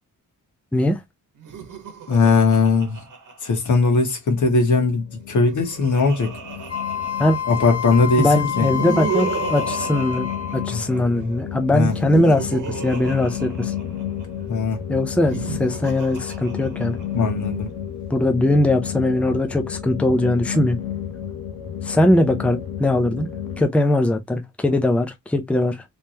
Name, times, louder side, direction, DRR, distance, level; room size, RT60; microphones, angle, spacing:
voice 1, 0.7-1.0 7.2-7.4 8.2-13.7 14.9-17.0 18.1-20.8 21.8-23.3 23.6-25.8, left 1 dB, 5° left, 0.5 m, -20 dB
Laughter, 1.4-4.1 5.2-7.8 8.5-11.2 11.8-14.2 15.1-17.2, right 6 dB, 65° right, 1.2 m, -33 dB
voice 2, 2.1-3.0 3.4-6.3 7.5-8.7 10.7-10.8 11.2-11.3 11.7-11.9 14.5-14.8 17.1-17.7, left 4 dB, 60° left, 1.5 m, -19 dB
sound 1, 4.8-23.6, left 9 dB, 85° left, 0.8 m, -32 dB
Wind instrument woodwind instrument, 6.7-10.8, left 9 dB, 45° left, 1.4 m, -28 dB
3.5 x 3.3 x 2.8 m
wide cardioid pair, 175°, 33 cm